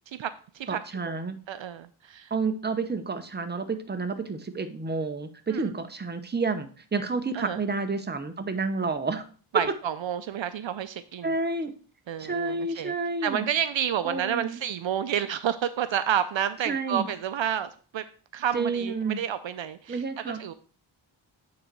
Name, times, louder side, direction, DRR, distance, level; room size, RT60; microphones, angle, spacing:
voice 1, 0.1-1.2 1.5-2.3 5.5-5.7 7.3-7.6 9.5-11.3 12.1-12.9 13.2-18.0 18.3-20.5, right 9 dB, 70° right, 12 dB, 0.6 m, -30 dB
voice 2, 0.7-1.4 2.3-9.3 11.2-11.7 12.2-13.5 14.0-14.6 16.7-17.1 18.5-19.2 19.9-20.4, right 4 dB, 20° right, 8 dB, 0.8 m, -30 dB
8.6 x 4.0 x 4.6 m, 0.40 s
wide cardioid pair, 80°, 49 cm